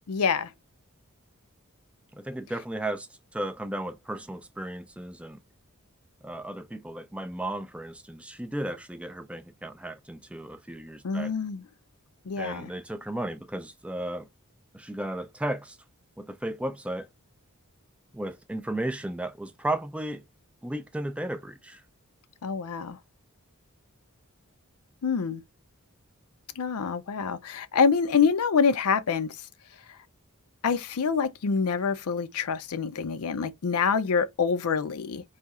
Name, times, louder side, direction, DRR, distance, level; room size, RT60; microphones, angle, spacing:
voice 1, 0.1-0.5 11.0-11.6 12.3-12.7 22.4-23.0 25.0-25.4 26.6-29.4 29.9-30.0 30.6-35.2, left 5 dB, 80° left, 0.5 m, -26 dB
voice 2, 2.1-5.4 6.2-11.3 12.4-14.3 14.7-15.8 16.2-17.1 18.1-20.2 20.6-21.8, right 1 dB, 5° right, 0.3 m, -34 dB
4.1 x 2.8 x 3.6 m
head